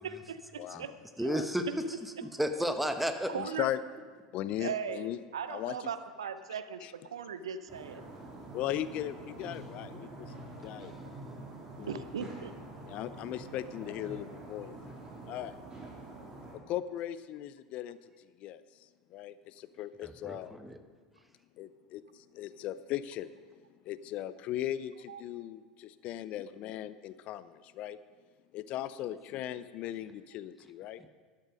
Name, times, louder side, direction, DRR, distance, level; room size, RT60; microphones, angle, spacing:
voice 1, 0.0-0.9 3.3-3.7 4.6-5.1 5.3-8.0 11.9-12.5 25.1-25.2, right 7 dB, 75° right, 12 dB, 0.7 m, -38 dB
voice 2, 0.6-0.9 1.3-1.4 3.3-3.8 4.3-5.2 5.5-5.9 6.8-6.9 8.5-10.3 10.6-10.9 11.8-12.1 12.8-14.9 15.2-15.5 16.7-20.6 21.6-22.0 22.3-23.3 23.8-28.0 28.5-31.0, left 12 dB, 50° left, 15 dB, 0.5 m, -38 dB
voice 3, 1.2-1.7 2.0-3.3 20.0-20.8 31.0-31.1, equal, 5° right, 7 dB, 1.2 m, -33 dB
sound 1, 7.7-16.5, right 2 dB, 25° right, 3.5 m, -46 dB
12.5 x 11.5 x 5.2 m, 1.5 s
figure-of-eight pair, 75°, 3 cm